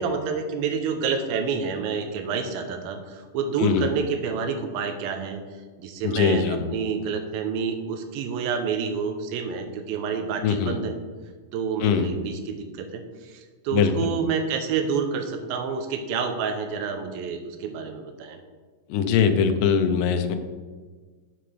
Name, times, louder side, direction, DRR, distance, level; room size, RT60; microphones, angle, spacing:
voice 1, 0.0-5.4 5.8-11.0 11.5-18.4, right 6 dB, 80° right, 6 dB, 2.5 m, -28 dB
voice 2, 6.0-6.6 10.4-10.8 11.8-12.2 13.7-14.1 18.9-20.4, left 6 dB, 75° left, 7 dB, 2.2 m, -22 dB
11.5 x 6.9 x 3.3 m, 1.4 s
omnidirectional pair, 4.3 m